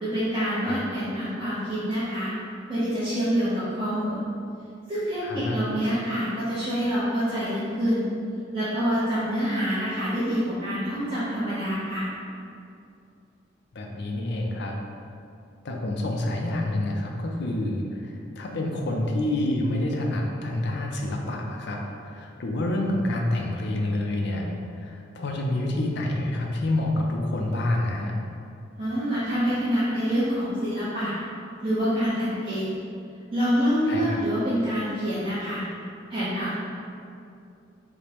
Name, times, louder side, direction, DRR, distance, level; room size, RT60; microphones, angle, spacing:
voice 1, 0.0-2.3 2.7-4.3 4.9-8.0 8.5-12.1 28.8-31.2 31.6-32.7 33.3-35.6 36.1-36.5, equal, 30° right, -12 dB, 0.8 m, -26 dB
voice 2, 5.2-5.6 13.7-14.7 15.6-28.1 33.9-34.2, left 1 dB, 65° left, 1 dB, 0.5 m, -28 dB
5.0 x 2.1 x 2.9 m, 2.5 s
head